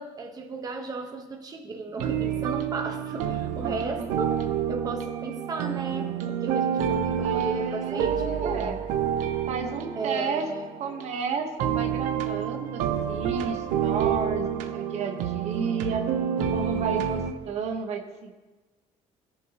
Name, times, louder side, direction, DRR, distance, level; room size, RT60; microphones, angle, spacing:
voice 1, 0.0-4.4 4.7-8.7 10.0-10.7, right 3 dB, 30° right, 3 dB, 1.2 m, -34 dB
sound 1, 2.0-17.3, right 8 dB, 90° right, 0.8 m, -28 dB
voice 2, 3.6-4.1 7.1-8.8 9.5-10.5 10.8-16.1 16.5-18.4, right 5 dB, 60° right, 4 dB, 1.2 m, -32 dB
17.5 x 7.0 x 3.0 m, 1.3 s
cardioid pair, 120°, 13 cm